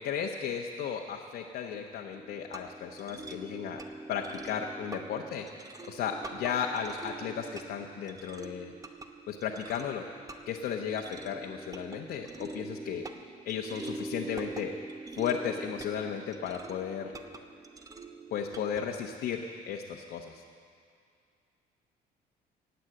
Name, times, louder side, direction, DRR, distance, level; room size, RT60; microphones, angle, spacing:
voice 1, 0.0-3.8 4.1-5.5 5.8-8.7 9.3-10.0 10.5-13.1 13.4-14.7 15.1-17.1 18.3-20.4, left 8 dB, 70° left, 1 dB, 1.0 m, -35 dB
sound 1, 2.1-18.8, right 2 dB, 20° right, 0.9 m, -44 dB
18.0 x 8.1 x 7.7 m, 2.3 s
cardioid pair, 110°, 17 cm